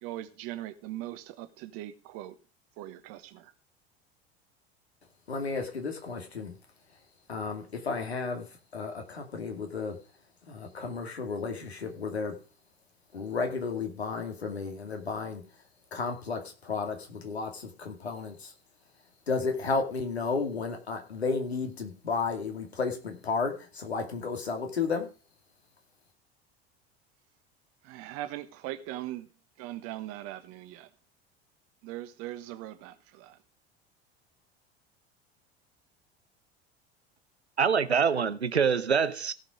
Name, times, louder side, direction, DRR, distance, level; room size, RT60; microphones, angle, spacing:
voice 1, 0.0-2.4 2.8-3.5 27.8-29.3 29.6-30.9 31.8-33.4, right 14 dB, 45° right, 1.3 m, -40 dB
voice 2, 5.3-6.6 7.3-8.5 8.7-10.0 10.5-12.3 13.1-15.4 15.9-18.5 19.3-25.1, left 4 dB, 80° left, 2.5 m, -33 dB
voice 3, 37.6-39.3, right 6 dB, 85° right, 0.8 m, -25 dB
17.0 x 5.9 x 4.9 m
figure-of-eight pair, 75°, 32 cm